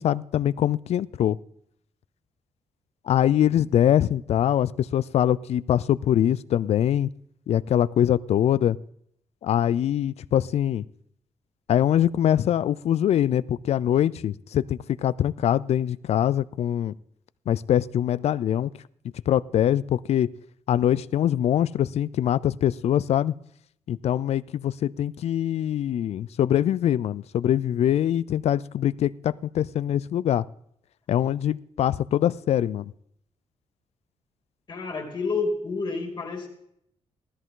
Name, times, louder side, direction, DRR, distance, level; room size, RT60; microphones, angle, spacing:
voice 1, 0.0-1.4 3.1-7.1 7.5-8.8 9.4-10.8 11.7-16.9 17.5-18.7 19.3-20.3 20.7-23.3 23.9-30.4 31.1-32.9, left 10 dB, 65° left, 19 dB, 0.4 m, -23 dB
voice 2, 34.7-36.5, left 3 dB, 40° left, 2 dB, 2.7 m, -29 dB
16.0 x 13.5 x 3.8 m, 0.72 s
wide cardioid pair, 150°, 12 cm